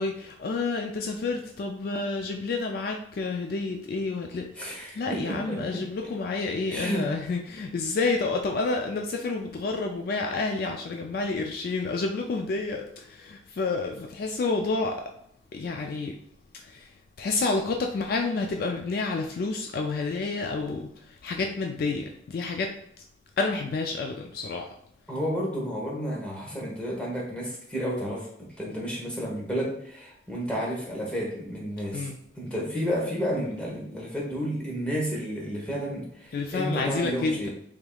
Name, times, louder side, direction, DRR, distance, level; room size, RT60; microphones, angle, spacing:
voice 1, 0.0-15.1 15.5-16.2 16.5-22.7 23.4-24.8 31.9-32.2 36.3-37.5, left 3 dB, 50° left, 3 dB, 0.3 m, -29 dB
voice 2, 4.6-5.6 6.7-7.1 25.1-32.1 32.4-37.5, equal, 5° left, -4 dB, 0.9 m, -31 dB
3.5 x 3.4 x 2.3 m, 0.70 s
head